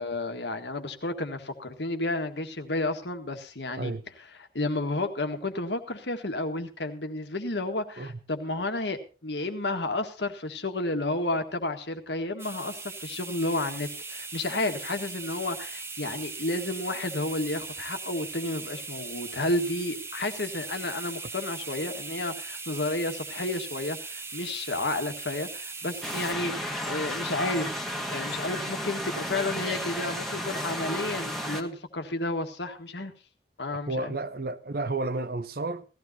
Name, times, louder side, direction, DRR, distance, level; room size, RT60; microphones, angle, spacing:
voice 1, 0.0-4.0 4.4-27.8 28.1-33.1 33.6-34.1, left 2 dB, 75° left, 1.7 m, -31 dB
sound 1, 12.4-26.3, right 4 dB, 15° right, 0.8 m, -39 dB
sound 2, 26.0-31.6, equal, ahead, 1.5 m, -33 dB
voice 2, 33.9-35.9, right 2 dB, 55° right, 0.8 m, -31 dB
18.0 x 14.5 x 2.8 m
head